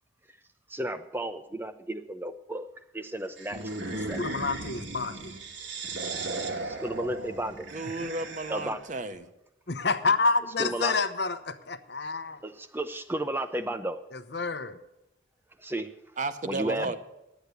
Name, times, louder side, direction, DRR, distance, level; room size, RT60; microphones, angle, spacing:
voice 1, 0.7-2.7 2.9-4.2 6.3-7.7 8.5-8.8 10.6-11.0 12.4-14.0 15.6-15.9 16.5-17.0, right 1 dB, 10° right, 8 dB, 0.4 m, -33 dB
sound 1, 3.4-8.8, right 2 dB, 70° right, 1.5 m, -36 dB
voice 2, 4.2-5.3 9.7-12.4 14.3-14.8, left 4 dB, 60° left, 10 dB, 0.8 m, -28 dB
voice 3, 7.7-9.3 16.2-17.0, right 2 dB, 40° right, 10 dB, 0.7 m, -33 dB
10.5 x 8.2 x 8.2 m, 0.90 s
head